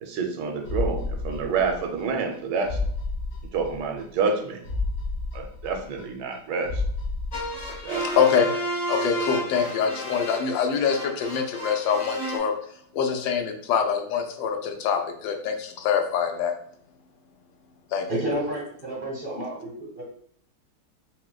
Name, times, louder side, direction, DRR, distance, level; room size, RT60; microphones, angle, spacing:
voice 1, 0.0-2.8 3.5-4.6 5.3-6.8 7.7-8.1, right 5 dB, 80° right, 3 dB, 1.2 m, -28 dB
sound 1, 0.6-2.0 2.3-2.4 2.6-4.0 4.3-4.4 4.6-6.4 6.6-8.0 8.3-8.4, left 3 dB, 65° left, 1.7 m, -31 dB
sound 2, 7.3-12.4, right 1 dB, 45° left, 0.5 m, -32 dB
voice 2, 8.0-8.5 8.9-12.5 12.9-16.5 17.9-18.1, left 7 dB, 90° left, 5 dB, 1.3 m, -24 dB
voice 3, 18.1-20.0, right 1 dB, 45° right, -4 dB, 0.7 m, -30 dB
5.8 x 2.1 x 2.2 m, 0.63 s
omnidirectional pair, 1.9 m